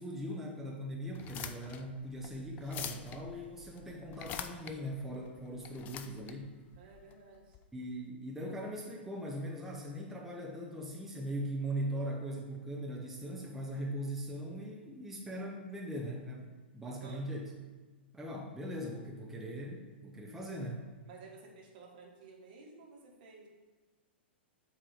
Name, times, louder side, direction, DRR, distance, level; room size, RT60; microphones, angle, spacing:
voice 1, 0.0-6.5 7.7-17.4 18.1-20.8, equal, 5° right, -2 dB, 0.7 m, -40 dB
sound 1, 1.1-7.6, left 9 dB, 30° left, 0.3 m, -46 dB
voice 2, 6.8-7.6 16.8-17.3 21.0-23.5, right 4 dB, 50° right, 0 dB, 1.2 m, -53 dB
7.5 x 2.8 x 4.8 m, 1.3 s
figure-of-eight pair, 105°, 6 cm